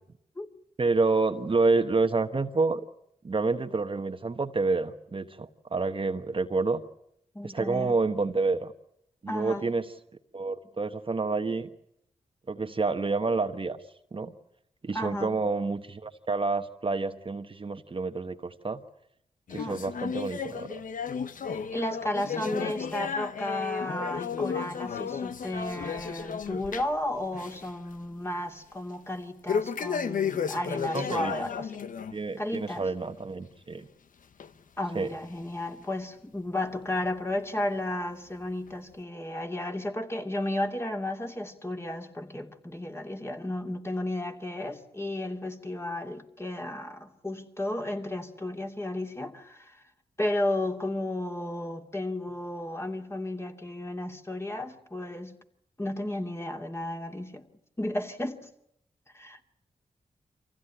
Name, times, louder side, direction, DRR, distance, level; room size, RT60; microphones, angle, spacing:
voice 1, 0.8-2.8 3.2-6.8 7.4-8.7 9.2-9.8 10.3-11.7 12.5-13.8 14.1-14.3 14.8-18.8 19.5-20.8 30.9-31.3 32.1-33.9 34.9-35.1, right 3 dB, 40° right, 7 dB, 1.2 m, -28 dB
voice 2, 7.3-7.9 9.3-9.7 14.9-15.4 19.6-19.8 21.5-31.8 32.4-32.9 34.8-49.8 50.2-55.3 55.8-57.4 57.8-58.5 59.1-59.4, left 1 dB, 20° left, 3 dB, 2.7 m, -33 dB
sound 1, 19.5-27.0 27.3-27.7 28.0-28.1 29.5-32.1 32.5-32.7 33.4-33.5 34.4-34.5 35.3-35.4, left 6 dB, 70° left, 1.0 m, -33 dB
24.5 x 16.0 x 9.9 m, 0.78 s
cardioid pair, 55°, 14 cm